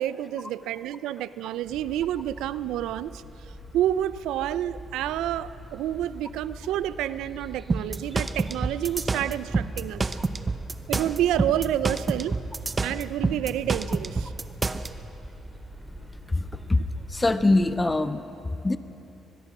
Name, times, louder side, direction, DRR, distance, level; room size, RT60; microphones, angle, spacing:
voice 1, 0.0-3.2 3.7-10.2 10.9-12.4 12.8-14.3, right 12 dB, 90° right, 16 dB, 0.5 m, -29 dB
sound 1, 1.6-18.0, equal, 5° right, 3.0 m, -43 dB
sound 2, 7.7-14.9, right 3 dB, 25° right, 0.9 m, -27 dB
voice 2, 16.3-16.8 17.1-18.2 18.6-18.8, left 2 dB, 20° left, 10 dB, 1.0 m, -23 dB
23.5 x 21.0 x 6.1 m, 2.9 s
cardioid pair, 90°, 0 cm